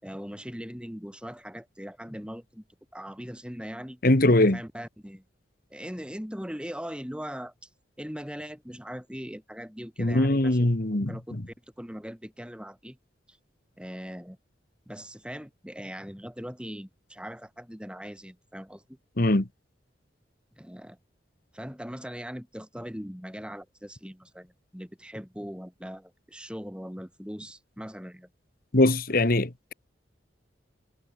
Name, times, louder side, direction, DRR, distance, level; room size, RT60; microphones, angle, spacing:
voice 1, 0.0-2.6 2.9-4.0 4.3-5.2 5.7-7.5 8.0-10.7 11.1-11.4 11.8-13.0 13.3-13.4 13.8-14.4 14.9-18.8 20.6-21.0 21.5-28.3, equal, 5° right, 6.6 m, -40 dB
voice 2, 4.0-4.6 10.0-11.4 19.2-19.5 28.7-29.7, left 1 dB, 50° left, 1.7 m, -22 dB
head